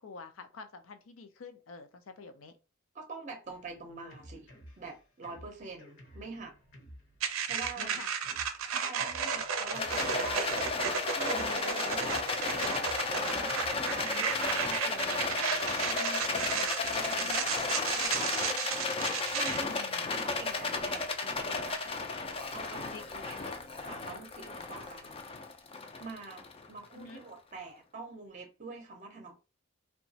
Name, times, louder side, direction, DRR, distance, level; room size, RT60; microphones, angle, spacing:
voice 1, 0.0-2.5 7.8-8.1 9.7-9.8 11.3-11.8 14.0-14.3 17.2-17.5 19.7-20.1 22.9-23.5 26.9-27.2, left 4 dB, 85° left, 0.5 m, -47 dB
voice 2, 2.9-4.5 4.8-6.5 7.4-8.0 8.7-10.5 11.1-12.1 12.5-12.8 13.2-18.4 19.3-21.8 22.5-23.4 23.9-25.2 26.0-29.3, right 3 dB, 35° right, 0.6 m, -45 dB
Drum kit, 3.4-13.7, equal, 65° left, 0.9 m, -54 dB
sound 1, 7.2-19.6, right 6 dB, 90° right, 0.5 m, -34 dB
Rattle, 9.7-27.1, left 4 dB, 30° left, 0.4 m, -34 dB
2.9 x 2.2 x 2.7 m
head